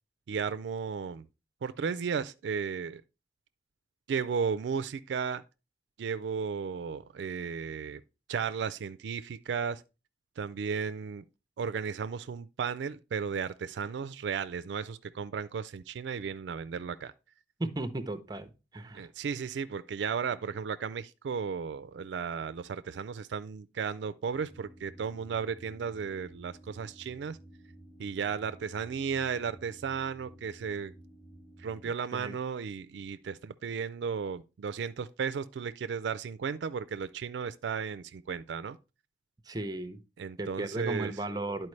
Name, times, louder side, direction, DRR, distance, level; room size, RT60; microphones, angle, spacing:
voice 1, 0.3-1.3 1.6-3.0 4.1-5.4 6.0-8.0 8.3-9.8 10.4-11.2 11.6-17.1 18.9-27.4 28.0-30.9 31.6-38.8 40.2-41.1, right 6 dB, 75° right, 0.3 m, -34 dB
voice 2, 17.6-19.1 32.1-32.4 39.4-40.0 40.4-41.7, right 2 dB, 20° right, 0.6 m, -36 dB
sound 1, 24.3-31.9, right 1 dB, 35° left, 1.2 m, -53 dB
11.0 x 4.5 x 3.2 m
head